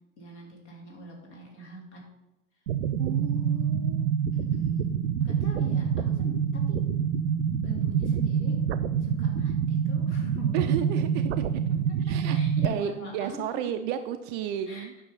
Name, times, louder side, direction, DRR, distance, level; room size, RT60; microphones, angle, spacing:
voice 1, 0.2-2.0 4.3-6.8 7.6-8.6 9.0-10.6 12.1-13.4 14.7-14.9, left 1 dB, 55° left, -1 dB, 3.2 m, -43 dB
sound 1, 2.7-12.7, right 8 dB, 60° right, 0.7 m, -26 dB
voice 2, 3.0-4.1 10.5-11.5 12.0-14.9, right 10 dB, 25° right, 8 dB, 0.4 m, -33 dB
9.4 x 5.9 x 5.8 m, 0.96 s
figure-of-eight pair, 85°, 40 cm